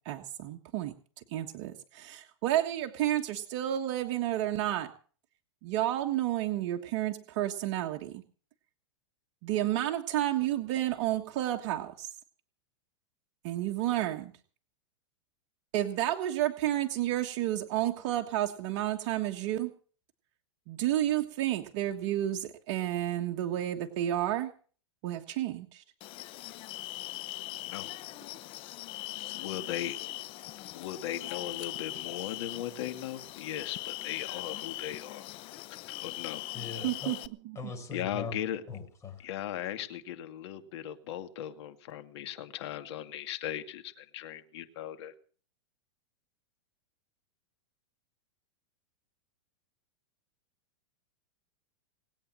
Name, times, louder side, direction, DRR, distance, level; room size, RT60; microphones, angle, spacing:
voice 1, 0.0-0.9 1.3-4.9 5.6-8.2 9.4-12.1 13.4-14.3 15.7-19.7 20.7-24.5 25.0-25.8 36.8-37.2 37.4-37.6, right 13 dB, 50° right, 3 dB, 1.5 m, -31 dB
sound 1, 26.0-37.3, left 17 dB, 35° left, 0.8 m, -41 dB
voice 2, 27.6-27.9 29.3-30.0 30.6-35.2 35.9-36.6 37.9-38.6 39.2-45.1, left 11 dB, 60° left, 9 dB, 2.2 m, -38 dB
voice 3, 36.5-37.1 37.6-38.4 38.7-39.2, left 4 dB, 20° left, 4 dB, 5.4 m, -40 dB
20.5 x 8.6 x 7.6 m, 0.43 s
hypercardioid pair, 135°, 15 cm